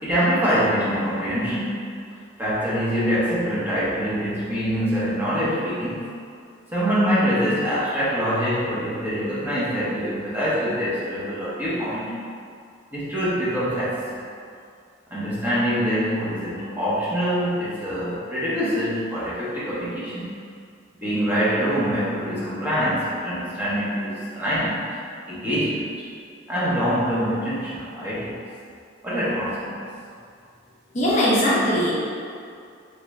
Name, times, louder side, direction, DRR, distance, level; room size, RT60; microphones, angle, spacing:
voice 1, 0.0-1.9 2.4-6.0 6.7-12.2 12.9-14.0 15.1-20.4 21.0-24.9 25.3-25.9 26.5-28.4 29.0-29.8, equal, 10° right, -10 dB, 0.6 m, -24 dB
voice 2, 30.9-31.9, equal, 40° left, -7 dB, 0.6 m, -20 dB
3.1 x 2.5 x 3.0 m, 2.3 s
head